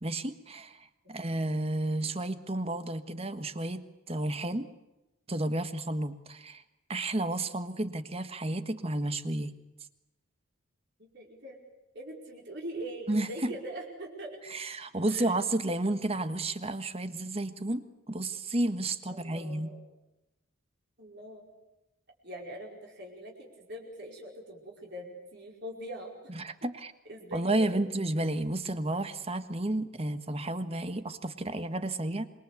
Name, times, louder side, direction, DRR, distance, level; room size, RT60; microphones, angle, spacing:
voice 1, 0.0-4.7 5.3-6.6 6.9-9.5 13.1-13.3 14.5-19.7 26.3-26.9 27.3-32.3, right 2 dB, 30° right, 10 dB, 1.4 m, -32 dB
voice 2, 11.0-11.6 11.9-14.4 15.1-15.4 19.1-19.8 21.0-21.5 22.2-26.1 27.1-27.8, right 1 dB, 55° right, -1 dB, 5.0 m, -42 dB
26.5 x 23.0 x 8.4 m, 0.96 s
head